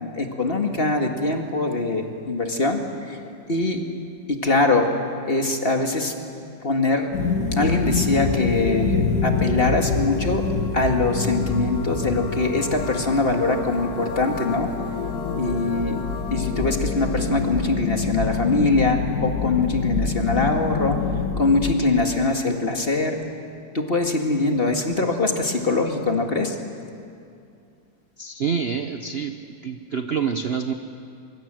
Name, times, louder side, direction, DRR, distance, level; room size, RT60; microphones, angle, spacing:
voice 1, 0.0-3.2 3.5-3.8 4.3-4.9 5.2-6.1 6.6-7.1 7.5-10.5 10.7-14.7 15.4-16.0 16.3-21.0 21.4-23.2 23.7-26.6, left 3 dB, 30° left, 3 dB, 2.0 m, -23 dB
sound 1, 7.1-21.7, left 4 dB, 60° left, 2.1 m, -26 dB
voice 2, 28.2-29.3 29.6-30.7, right 6 dB, 45° right, 7 dB, 0.8 m, -26 dB
24.5 x 23.5 x 7.7 m, 2.5 s
omnidirectional pair, 2.0 m